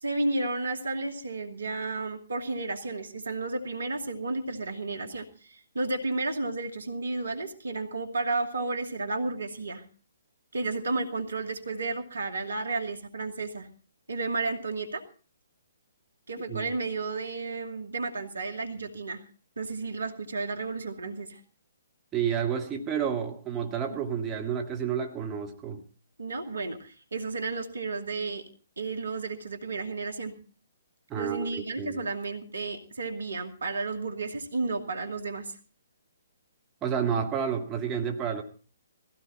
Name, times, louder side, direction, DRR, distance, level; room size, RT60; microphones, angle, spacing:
voice 1, 0.0-9.8 10.5-13.7 14.1-15.0 16.3-19.2 19.6-21.4 23.9-24.0 26.2-28.4 28.8-30.4 31.2-35.6, right 3 dB, 70° right, 6 dB, 2.2 m, -32 dB
voice 2, 22.1-25.8 31.1-32.0 36.8-38.4, right 7 dB, 20° right, 2 dB, 1.9 m, -30 dB
18.5 x 16.0 x 4.2 m, 0.38 s
figure-of-eight pair, 130°, 0 cm